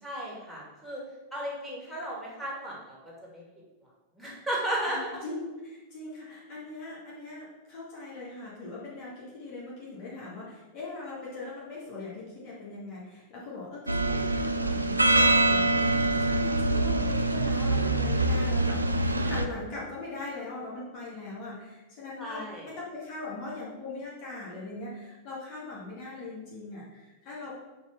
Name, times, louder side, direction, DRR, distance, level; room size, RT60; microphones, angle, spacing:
voice 1, 0.0-1.0 1.3-3.4 4.2-5.1 22.2-22.7, right 1 dB, ahead, -5 dB, 2.5 m, -34 dB
voice 2, 4.9-27.5, left 3 dB, 45° left, -7 dB, 2.1 m, -41 dB
sound 1, 13.9-19.5, right 2 dB, 90° right, 0.4 m, -24 dB
5.3 x 4.7 x 5.8 m, 1.2 s
figure-of-eight pair, 95°, 0 cm